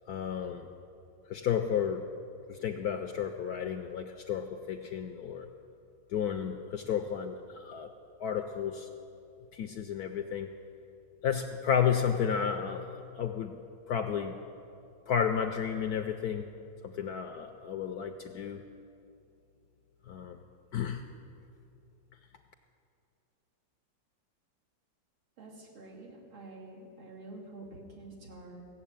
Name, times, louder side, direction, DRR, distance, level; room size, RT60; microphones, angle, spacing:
voice 1, 0.1-0.7 1.3-2.0 2.5-5.5 6.1-7.9 8.2-8.9 9.5-10.5 11.2-13.5 13.9-14.4 15.1-16.5 16.8-18.6 20.1-20.4 20.7-21.0, left 8 dB, 70° left, 7 dB, 0.9 m, -32 dB
voice 2, 25.4-28.7, right 2 dB, 85° right, -4 dB, 3.3 m, -48 dB
16.0 x 7.3 x 8.8 m, 2.6 s
omnidirectional pair, 2.2 m